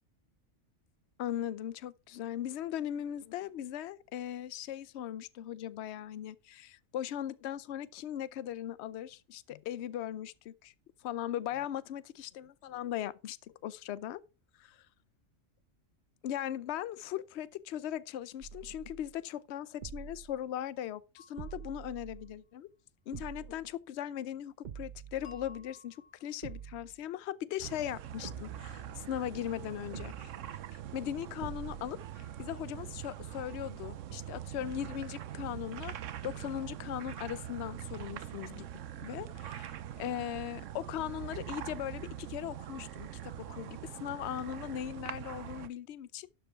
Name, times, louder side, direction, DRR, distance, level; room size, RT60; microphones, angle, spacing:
voice 1, 1.2-10.7 11.0-14.2 14.6-14.8 16.2-22.7 23.1-30.3 30.7-38.7 39.0-46.3, left 11 dB, 60° left, 0.8 m, -39 dB
sound 1, 18.4-19.2 19.8-20.4 21.4-22.4 23.1-23.7 24.6-25.7 26.4-27.0 28.2-29.4 29.9-30.6 31.4-32.0, right 8 dB, 45° right, 0.6 m, -46 dB
sound 2, 21.2-22.3 25.2-26.6, left 5 dB, 85° left, 2.0 m, -56 dB
sound 3, 27.6-45.7, right 11 dB, 70° right, 1.0 m, -43 dB
12.0 x 5.2 x 4.6 m
omnidirectional pair, 1.4 m